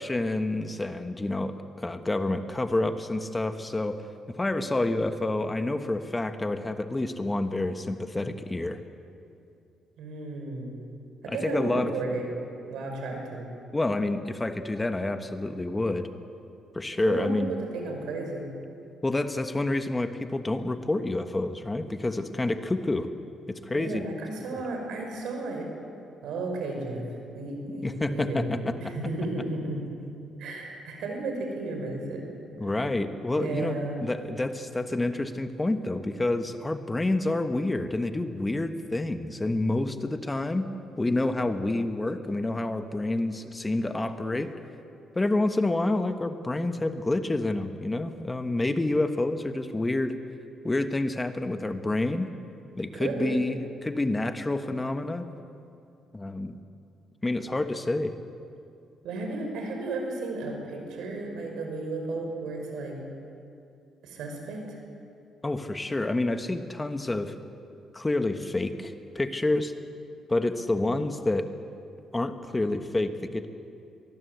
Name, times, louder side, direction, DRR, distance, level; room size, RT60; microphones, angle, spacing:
voice 1, 0.0-4.0 4.4-8.8 11.3-11.9 13.7-16.1 16.7-17.5 19.0-23.1 23.5-24.1 24.4-24.6 27.8-28.7 32.6-40.7 41.0-44.5 45.1-50.2 50.6-52.3 52.8-55.2 56.1-56.6 57.2-58.2 65.4-67.3 67.9-69.7 70.3-71.5 72.1-73.5, left 2 dB, 15° left, 8 dB, 1.3 m, -28 dB
voice 2, 10.0-10.8 11.2-12.3 12.7-13.5 17.0-18.5 23.7-25.7 26.2-29.8 30.4-32.3 33.4-34.0 52.9-53.5 59.0-63.0 64.0-64.8, right 2 dB, 80° right, 2 dB, 5.6 m, -33 dB
23.5 x 19.5 x 8.2 m, 2.6 s
cardioid pair, 90°, 0 cm